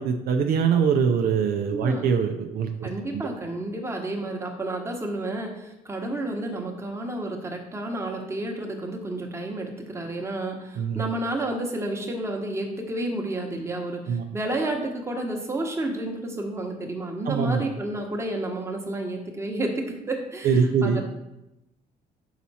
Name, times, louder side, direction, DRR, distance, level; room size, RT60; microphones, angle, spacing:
voice 1, 0.0-3.2 10.8-11.0 14.1-14.2 17.3-17.6 20.4-21.0, right 6 dB, 65° right, 5 dB, 0.5 m, -23 dB
voice 2, 1.7-2.1 2.8-21.0, right 1 dB, 15° right, 1 dB, 1.1 m, -31 dB
5.8 x 4.2 x 4.2 m, 0.92 s
cardioid pair, 110°, 17 cm